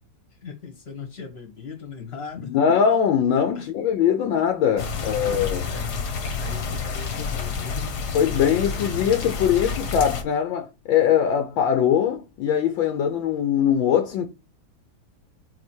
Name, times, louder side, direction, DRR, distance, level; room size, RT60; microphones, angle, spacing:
voice 1, 0.4-2.6 3.5-3.6 5.0-6.1 6.4-7.8, left 6 dB, 35° left, 1.4 m, -38 dB
voice 2, 2.4-5.6 8.1-14.3, left 8 dB, 80° left, 1.5 m, -21 dB
sound 1, 4.8-10.2, left 5 dB, 60° left, 1.4 m, -29 dB
4.8 x 4.3 x 4.5 m
omnidirectional pair, 2.2 m